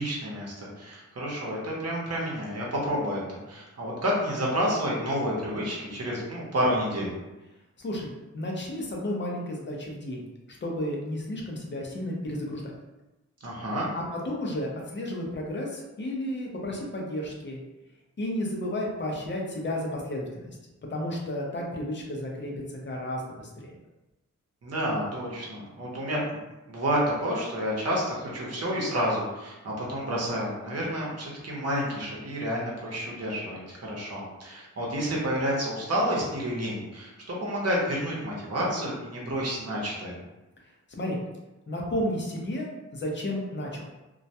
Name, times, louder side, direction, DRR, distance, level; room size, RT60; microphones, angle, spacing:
voice 1, 0.0-7.1 13.4-13.9 24.6-26.4 26.7-40.2, equal, 55° right, -4 dB, 0.8 m, -29 dB
voice 2, 7.8-12.7 13.9-17.6 18.2-20.5 20.9-23.8 41.0-41.2 41.7-42.7 42.9-43.8, left 1 dB, 40° left, -1 dB, 0.5 m, -32 dB
2.2 x 2.1 x 2.7 m, 1.0 s
wide cardioid pair, 130°, 30 cm